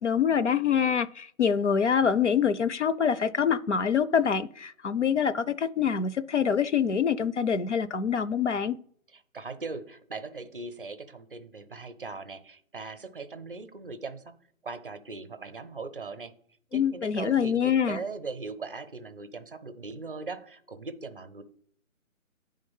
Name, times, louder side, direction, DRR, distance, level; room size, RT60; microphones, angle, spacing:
voice 1, 0.0-8.8 16.7-18.0, left 7 dB, 55° left, 0.5 m, -25 dB
voice 2, 9.3-14.3 14.6-16.3 16.7-21.4, right 3 dB, 40° right, 0.6 m, -39 dB
9.5 x 3.8 x 5.4 m
figure-of-eight pair, 165°, 42 cm